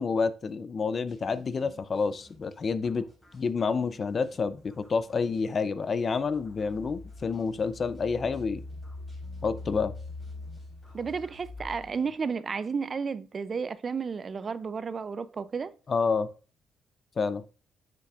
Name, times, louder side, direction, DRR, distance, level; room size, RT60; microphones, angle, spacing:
voice 1, 0.0-3.1 3.3-8.6 9.4-9.9 15.9-16.3 17.2-17.4, left 5 dB, 40° left, 0.5 m, -29 dB
sound 1, 1.1-12.1, left 1 dB, 25° left, 3.2 m, -58 dB
Engine, 6.2-12.1, left 2 dB, 85° left, 2.6 m, -43 dB
voice 2, 10.9-15.7, right 5 dB, 40° right, 0.4 m, -32 dB
6.8 x 6.8 x 2.4 m
cardioid pair, 90°, 0 cm